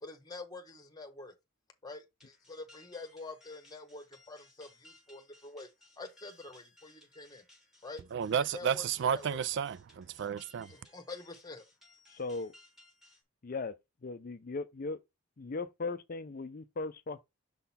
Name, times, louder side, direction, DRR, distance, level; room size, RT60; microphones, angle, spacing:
voice 1, 0.0-1.3 1.8-5.7 6.0-7.4 7.8-8.1 8.4-9.4 10.7-11.6, left 3 dB, 15° left, 1.1 m, -47 dB
sound 1, 2.2-13.2, left 1 dB, ahead, 1.6 m, -62 dB
voice 2, 8.1-10.7, right 8 dB, 55° right, 0.3 m, -32 dB
voice 3, 12.1-12.5 13.4-13.7 14.0-15.0 15.4-17.2, left 3 dB, 40° left, 0.5 m, -38 dB
6.6 x 3.9 x 4.1 m
head